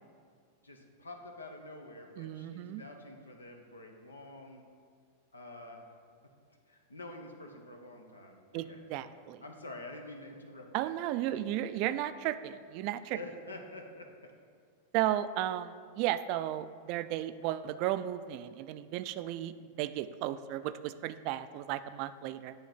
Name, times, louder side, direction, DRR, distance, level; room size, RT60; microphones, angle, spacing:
voice 1, 0.6-4.6 5.3-5.9 6.7-9.1 9.4-10.9 11.3-11.9 13.1-14.1, left 2 dB, 90° left, 3 dB, 0.8 m, -48 dB
voice 2, 2.2-2.8 8.5-9.4 10.7-13.2 14.9-22.5, right 13 dB, 50° right, 13 dB, 0.3 m, -34 dB
8.5 x 3.5 x 5.8 m, 2.1 s
hypercardioid pair, 95°, 0 cm